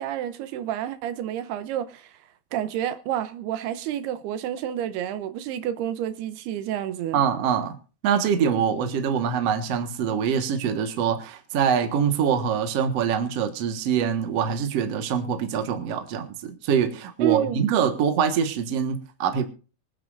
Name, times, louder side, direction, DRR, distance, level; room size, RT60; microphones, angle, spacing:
voice 1, 0.0-2.2 2.5-7.2 17.2-17.7, right 11 dB, 80° right, 2.8 m, -29 dB
voice 2, 7.1-7.8 8.0-19.5, right 7 dB, 55° right, 2.0 m, -24 dB
25.5 x 9.4 x 2.6 m
omnidirectional pair, 4.7 m